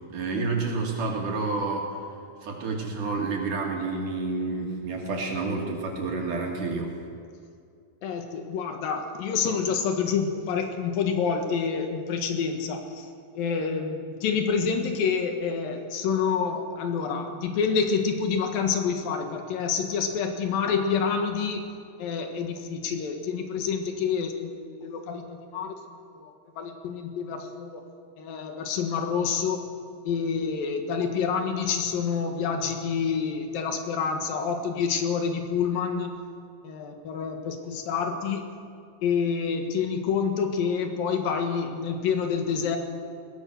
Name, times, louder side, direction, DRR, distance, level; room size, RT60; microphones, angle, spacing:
voice 1, 0.1-2.0 2.4-7.0, right 3 dB, 65° right, -1 dB, 4.0 m, -29 dB
voice 2, 8.0-13.1 13.3-21.6 22.0-25.7 26.1-27.8 28.2-29.6 30.0-36.1 36.6-38.4 39.0-42.8, left 6 dB, 85° left, 5 dB, 3.4 m, -28 dB
22.0 x 19.5 x 6.5 m, 2.4 s
omnidirectional pair, 4.0 m